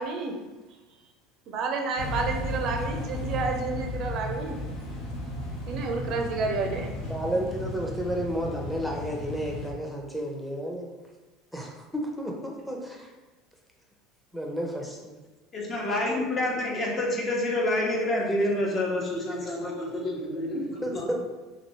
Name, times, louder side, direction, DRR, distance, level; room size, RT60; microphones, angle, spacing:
voice 1, 0.0-0.3 1.5-4.6 5.7-6.9, right 4 dB, 60° right, 3 dB, 0.5 m, -30 dB
sound 1, 2.0-9.7, left 1 dB, 70° left, 0.8 m, -34 dB
voice 2, 7.0-10.9 11.5-13.1 14.3-15.0 19.2-19.4 20.8-21.2, equal, ahead, -1 dB, 0.7 m, -32 dB
voice 3, 15.5-21.1, left 1 dB, 40° left, -2 dB, 0.8 m, -28 dB
2.9 x 2.6 x 3.0 m, 1.2 s
supercardioid pair, 90°, 0 cm